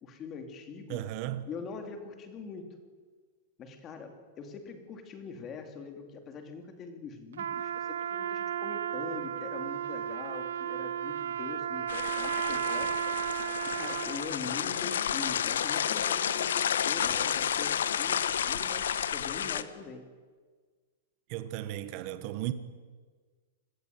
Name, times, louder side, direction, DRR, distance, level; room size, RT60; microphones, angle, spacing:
voice 1, 0.0-1.0 1.5-2.8 3.6-13.1 13.6-20.1, left 5 dB, 15° left, 2.7 m, -43 dB
voice 2, 0.9-1.5 21.3-22.5, right 14 dB, 30° right, 1.3 m, -35 dB
Trumpet, 7.3-14.3, right 9 dB, 75° right, 1.3 m, -34 dB
sound 1, 11.9-19.6, left 9 dB, 85° left, 1.6 m, -31 dB
28.5 x 21.5 x 9.4 m
supercardioid pair, 180°, 0 cm